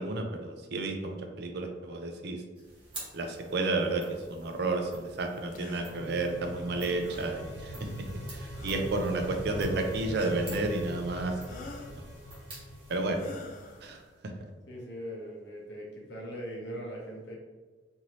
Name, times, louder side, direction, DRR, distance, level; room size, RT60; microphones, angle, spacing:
voice 1, 0.0-2.4 3.1-4.0 4.3-7.9 8.3-11.4 12.9-13.2 13.8-14.3, right 2 dB, 60° right, 4 dB, 0.4 m, -31 dB
sound 1, 2.5-14.2, right 1 dB, 30° right, 1.2 m, -49 dB
sound 2, 5.3-13.9, equal, 75° right, 0.9 m, -43 dB
sound 3, 5.5-5.9 7.0-7.4 8.5-9.0 10.1-10.6 11.4-12.0 13.1-13.8, left 3 dB, 45° left, 0.3 m, -47 dB
voice 2, 6.0-6.9 8.8-9.0 13.0-13.4 14.7-17.4, equal, 65° left, -2 dB, 0.8 m, -41 dB
2.7 x 2.7 x 3.0 m, 1.3 s
head